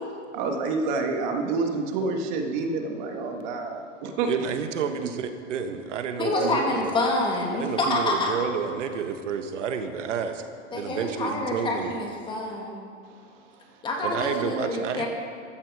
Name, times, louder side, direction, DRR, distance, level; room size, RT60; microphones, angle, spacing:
voice 1, 0.3-4.5 5.0-5.1 6.3-6.5, right 3 dB, 35° right, 4 dB, 1.6 m, -28 dB
voice 2, 4.3-6.9 7.5-10.4 10.7-11.9 14.0-15.1, right 7 dB, 70° right, 7 dB, 1.4 m, -30 dB
voice 3, 6.2-8.3 10.7-12.8 13.8-15.1, left 2 dB, 10° left, 0 dB, 1.9 m, -27 dB
15.0 x 13.5 x 4.8 m, 2.4 s
hypercardioid pair, 155°, 38 cm